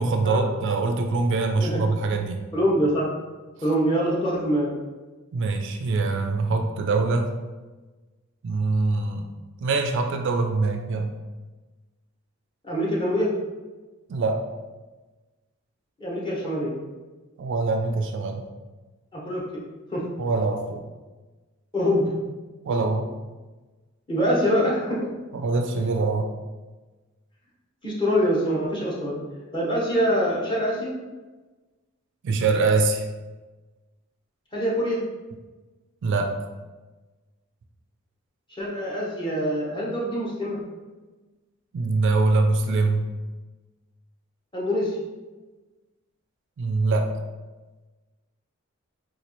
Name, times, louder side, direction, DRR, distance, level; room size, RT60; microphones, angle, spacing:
voice 1, 0.0-2.4 5.3-7.3 8.4-9.3 9.6-11.1 14.1-14.4 17.4-18.4 20.2-20.8 22.7-23.1 25.3-26.3 32.2-33.1 36.0-36.3 41.7-43.1 46.6-47.1, right 3 dB, 60° right, 4 dB, 0.3 m, -23 dB
voice 2, 2.5-3.1 3.6-4.7 12.6-13.3 16.0-16.7 19.1-19.4 19.9-20.1 21.7-22.1 24.1-25.1 27.8-29.2 29.5-30.9 34.5-35.0 38.5-40.6 44.5-44.9, equal, 25° left, -5 dB, 0.8 m, -24 dB
4.0 x 2.4 x 2.9 m, 1.2 s
head